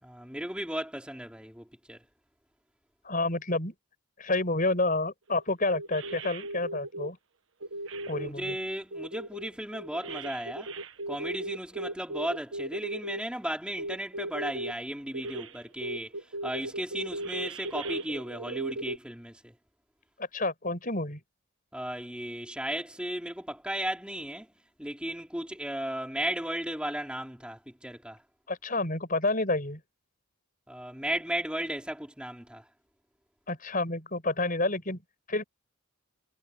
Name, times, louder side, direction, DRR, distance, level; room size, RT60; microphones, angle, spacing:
voice 1, 0.0-2.0 8.1-10.7 11.1-16.1 16.4-19.5 21.7-24.5 24.8-28.2 30.7-32.6, right 1 dB, 5° right, 3.6 m, -35 dB
voice 2, 3.0-3.7 4.2-7.2 8.1-8.6 20.2-21.2 28.5-29.8 33.5-35.0 35.3-35.4, left 2 dB, 40° left, 6.3 m, -29 dB
sound 1, 5.3-5.4 5.7-7.1 7.6-8.5 8.9-13.2 13.8-14.7 15.1-15.5 15.8-19.0, right 1 dB, 60° right, 1.4 m, -37 dB
head